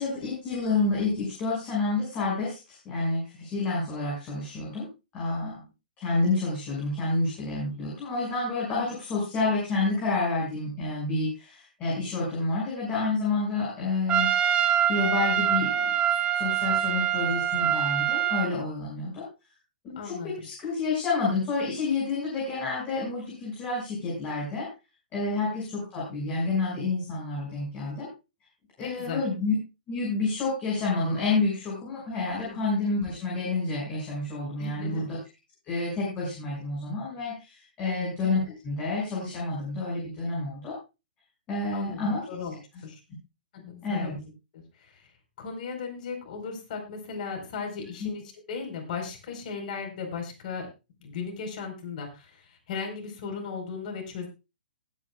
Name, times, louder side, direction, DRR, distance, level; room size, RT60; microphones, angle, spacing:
voice 1, 0.0-4.9 5.1-5.6 6.0-14.3 14.9-15.9 16.4-19.2 19.8-24.7 25.1-28.1 28.8-29.5 29.9-35.2 35.6-40.7 41.5-42.2 43.8-44.2 48.0-48.1, left 3 dB, 25° left, -4 dB, 6.0 m, -29 dB
Trumpet, 14.1-18.5, right 10 dB, 20° right, 1.2 m, -25 dB
voice 2, 19.9-20.5 25.5-25.6 28.8-29.2 32.4-32.6 34.6-35.0 37.8-38.1 41.7-43.0 43.5-45.1 45.4-50.7 51.0-54.3, left 5 dB, 50° left, 3 dB, 4.4 m, -37 dB
20.0 x 8.9 x 2.4 m, 0.28 s
hypercardioid pair, 140°, 5 cm